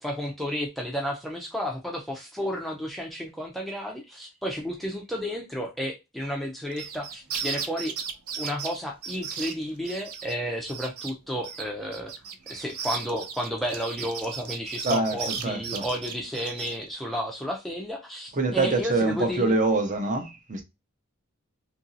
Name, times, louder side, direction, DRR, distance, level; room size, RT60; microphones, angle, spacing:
voice 1, 0.0-7.9 8.4-12.1 12.5-19.5, equal, ahead, 0.4 m, -32 dB
sound 1, 6.7-10.3 10.7-11.1 11.4-16.8, right 6 dB, 80° right, 0.5 m, -35 dB
voice 2, 14.8-15.9 18.3-20.6, right 3 dB, 35° right, 0.7 m, -25 dB
2.9 x 2.6 x 2.6 m
head